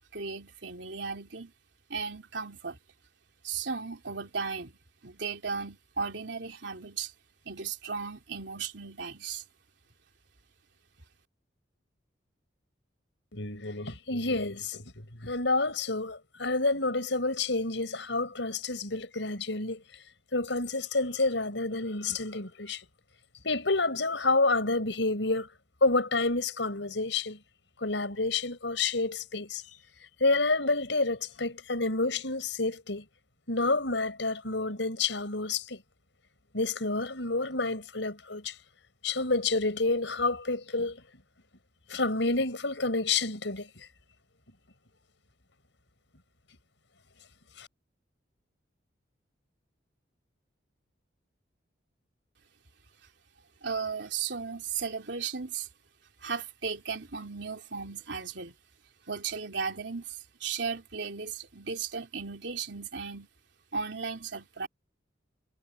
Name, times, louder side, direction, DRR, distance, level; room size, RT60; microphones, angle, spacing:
voice 1, 0.1-1.5 1.9-2.8 3.4-4.8 5.0-7.1 7.4-9.4 53.6-55.7 56.2-58.5 59.1-63.3 63.7-64.7, right 5 dB, 70° right, 3.1 m, -36 dB
voice 2, 13.3-14.8 15.2-19.8 20.3-22.8 23.4-25.5 25.8-27.4 27.8-29.8 30.2-33.0 33.5-35.8 36.5-38.5 39.0-41.0 41.9-43.7 47.6-47.7, left 3 dB, 75° left, 4.9 m, -29 dB
head